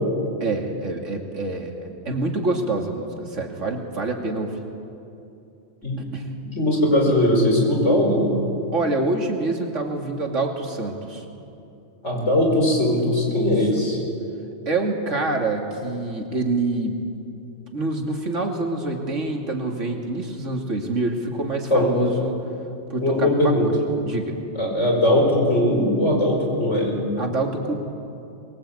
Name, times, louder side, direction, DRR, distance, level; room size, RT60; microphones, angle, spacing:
voice 1, 0.4-4.6 6.0-6.3 8.7-11.2 13.3-13.6 14.7-17.0 17.7-22.4 22.9-23.7 24.0-24.4 27.2-27.7, right 2 dB, 85° right, 2 dB, 2.9 m, -26 dB
voice 2, 6.6-8.2 12.0-14.0 21.7-21.9 23.0-23.7 24.6-27.0, left 1 dB, 75° left, 0 dB, 5.5 m, -20 dB
23.5 x 22.0 x 8.6 m, 2.7 s
omnidirectional pair, 1.2 m